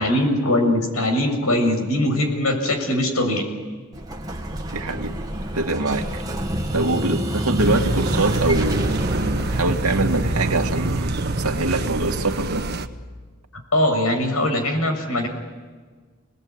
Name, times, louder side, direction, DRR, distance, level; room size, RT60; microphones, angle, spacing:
voice 1, 0.0-3.4 13.7-15.3, left 1 dB, 80° left, 5 dB, 7.2 m, -21 dB
Explosion, 3.9-12.6, right 1 dB, 15° right, 2.0 m, -30 dB
voice 2, 4.7-5.2 5.5-6.2 6.7-12.6, right 2 dB, 90° right, 3 dB, 2.5 m, -24 dB
sound 1, 7.6-12.9, right 2 dB, 45° right, 1.5 m, -26 dB
29.0 x 21.0 x 9.8 m, 1.4 s
head